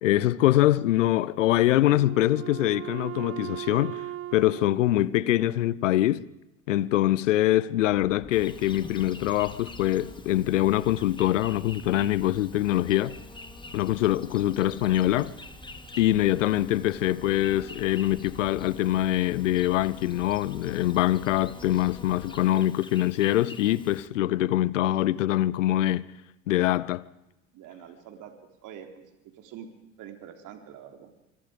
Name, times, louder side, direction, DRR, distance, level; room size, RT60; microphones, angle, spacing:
voice 1, 0.0-4.0 4.3-6.3 6.7-13.2 13.7-15.3 16.0-26.0 26.5-27.0, left 14 dB, 85° left, 0.8 m, -24 dB
Wind instrument woodwind instrument, 1.5-6.0, right 12 dB, 40° right, 0.7 m, -39 dB
sound 1, 7.9-22.4, equal, 10° right, 6.4 m, -48 dB
Insect, 8.3-24.1, left 2 dB, 15° left, 2.4 m, -47 dB
voice 2, 27.5-28.3 28.6-29.0 29.3-29.7 30.0-31.1, right 9 dB, 55° right, 3.7 m, -45 dB
26.5 x 24.0 x 5.2 m
hypercardioid pair, 70°, 37 cm